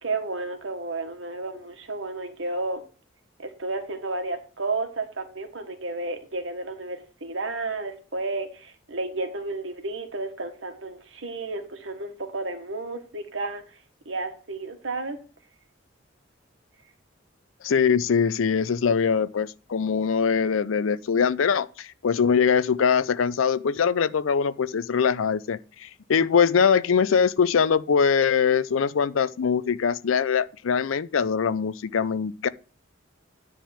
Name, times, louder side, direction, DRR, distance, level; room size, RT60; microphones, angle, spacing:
voice 1, 0.0-2.8 3.4-13.6 14.0-15.2, right 3 dB, 70° right, 1.5 m, -32 dB
voice 2, 17.6-32.5, left 6 dB, 90° left, 0.5 m, -22 dB
10.0 x 3.7 x 7.2 m
head